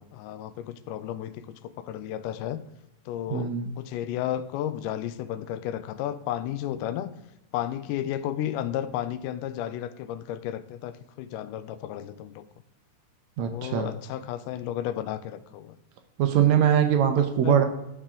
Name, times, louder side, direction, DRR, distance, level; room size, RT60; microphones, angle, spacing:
voice 1, 0.0-2.6 3.1-7.1 7.5-12.5 13.4-15.8 17.4-17.6, left 11 dB, 90° left, 14 dB, 2.2 m, -33 dB
voice 2, 3.3-3.7 13.4-13.9 16.2-17.6, right 9 dB, 75° right, 7 dB, 1.8 m, -22 dB
13.0 x 4.9 x 3.7 m, 0.87 s
omnidirectional pair, 3.6 m